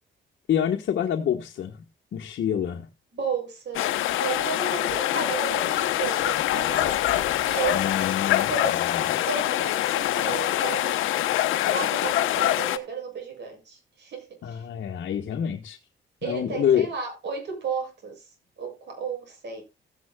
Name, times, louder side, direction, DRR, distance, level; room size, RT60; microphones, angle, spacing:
voice 1, 0.5-1.8 2.1-2.9 7.7-9.0 14.4-15.8 16.2-16.9, left 9 dB, 65° left, 1.4 m, -27 dB
voice 2, 3.1-7.0 7.4-7.8 8.5-11.0 11.6-14.6 16.2-18.2 18.6-19.6, right 5 dB, 60° right, 7.3 m, -33 dB
sound 1, 3.7-12.8, left 13 dB, 85° left, 1.0 m, -25 dB
15.5 x 9.5 x 2.3 m
cardioid pair, 90°, 20 cm